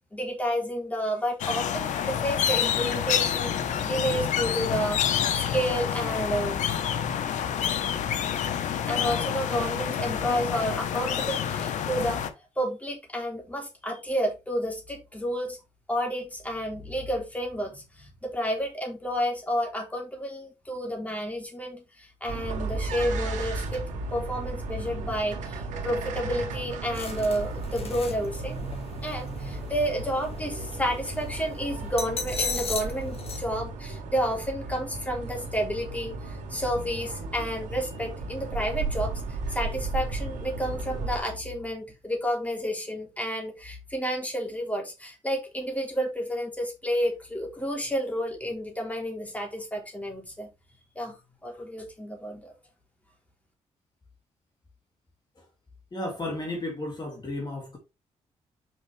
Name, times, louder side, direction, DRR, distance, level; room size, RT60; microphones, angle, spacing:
voice 1, 0.1-6.6 8.9-12.2 12.5-15.6 15.9-23.8 24.1-28.6 29.0-50.5 50.9-51.2 51.4-52.5, equal, 10° left, 3.4 m, -30 dB
sound 1, 1.4-12.3, left 9 dB, 80° left, 0.9 m, -28 dB
sound 2, 22.3-41.2, right 3 dB, 90° right, 1.7 m, -34 dB
sound 3, 26.9-33.4, left 4 dB, 55° left, 2.0 m, -37 dB
voice 2, 55.9-57.8, left 1 dB, 35° left, 2.3 m, -33 dB
6.1 x 5.5 x 3.3 m
cardioid pair, 75°, 12 cm